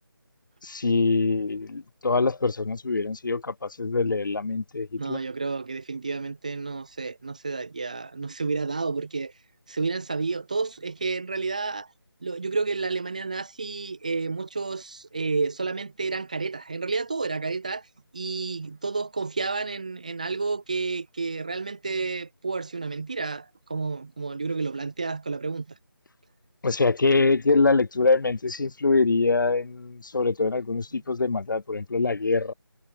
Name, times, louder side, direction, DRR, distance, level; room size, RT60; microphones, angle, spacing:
voice 1, 0.6-5.2 26.6-32.5, left 3 dB, 55° left, 0.8 m, -24 dB
voice 2, 5.0-9.3 9.7-11.9 12.2-17.9 18.1-25.8, right 4 dB, 20° right, 0.5 m, -30 dB
figure-of-eight pair, 165°, 13 cm